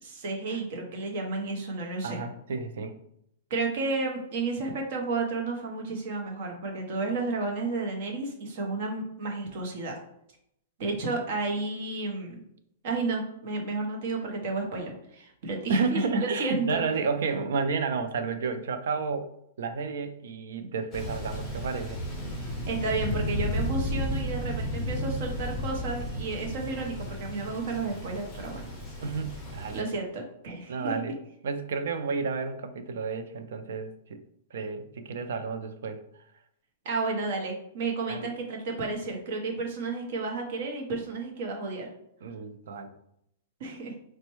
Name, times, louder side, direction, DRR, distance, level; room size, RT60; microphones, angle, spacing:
voice 1, 0.0-2.2 3.5-10.0 10.8-12.4 12.8-16.8 22.7-28.7 29.7-31.0 36.8-41.9 43.6-43.9, right 3 dB, 45° right, 1 dB, 0.8 m, -32 dB
voice 2, 2.0-2.9 15.7-19.3 19.6-22.0 29.0-29.9 30.7-31.2 31.4-34.2 34.5-36.0 38.1-38.3 42.2-42.9, right 4 dB, 70° right, 8 dB, 0.4 m, -31 dB
Thunder, 20.9-29.8, equal, 10° left, 0.7 m, -33 dB
4.1 x 2.2 x 3.0 m, 0.75 s
supercardioid pair, 170°, 0 cm